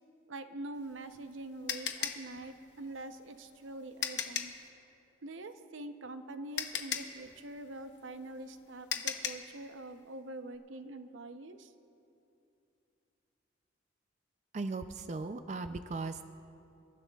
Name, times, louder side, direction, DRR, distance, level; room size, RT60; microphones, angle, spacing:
voice 1, 0.3-4.5 5.2-11.7, right 2 dB, 80° right, 9 dB, 0.7 m, -45 dB
sound 1, 0.8-4.6 6.0-6.1 6.6-9.5, left 8 dB, 60° left, 0.9 m, -37 dB
voice 2, 14.5-16.2, right 3 dB, 35° right, 9 dB, 0.4 m, -37 dB
29.0 x 14.5 x 2.3 m, 2.7 s
head